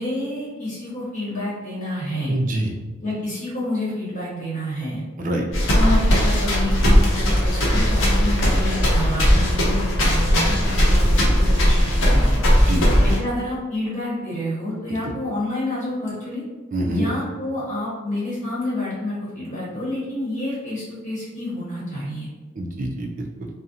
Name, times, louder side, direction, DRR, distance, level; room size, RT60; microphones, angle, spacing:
voice 1, 0.0-2.4 3.0-5.0 5.7-12.4 13.0-16.4 16.9-22.3, left 1 dB, 35° left, -8 dB, 1.1 m, -28 dB
voice 2, 2.3-2.7 5.2-5.5 12.6-13.2 16.7-17.1 22.6-23.5, right 1 dB, 40° right, 0 dB, 0.3 m, -26 dB
sound 1, 5.5-13.2, equal, 65° left, 0.7 m, -18 dB
2.5 x 2.0 x 2.7 m, 1.3 s
head